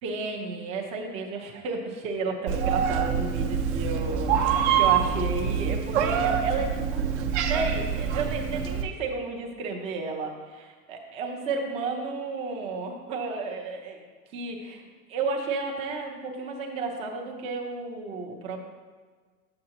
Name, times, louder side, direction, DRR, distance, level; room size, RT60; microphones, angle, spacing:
voice 1, 0.0-14.0 14.3-18.6, right 4 dB, 15° right, 0 dB, 0.5 m, -32 dB
Meow, 2.5-8.8, right 7 dB, 50° right, 0.8 m, -25 dB
9.6 x 7.7 x 2.8 m, 1.5 s
supercardioid pair, 155°, 45 cm